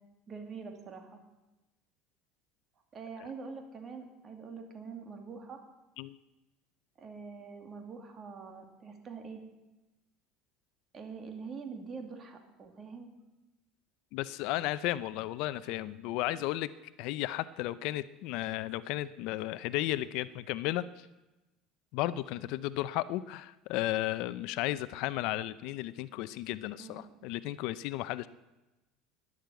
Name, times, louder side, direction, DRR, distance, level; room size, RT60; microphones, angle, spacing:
voice 1, 0.3-1.2 2.9-5.6 7.0-9.4 10.9-13.1 26.8-27.2, right 5 dB, 30° right, 4 dB, 2.4 m, -44 dB
voice 2, 14.1-16.7 17.0-20.8 21.9-28.3, left 15 dB, 65° left, 16 dB, 0.6 m, -34 dB
12.5 x 10.5 x 8.2 m, 1.0 s
cardioid pair, 135°, 0 cm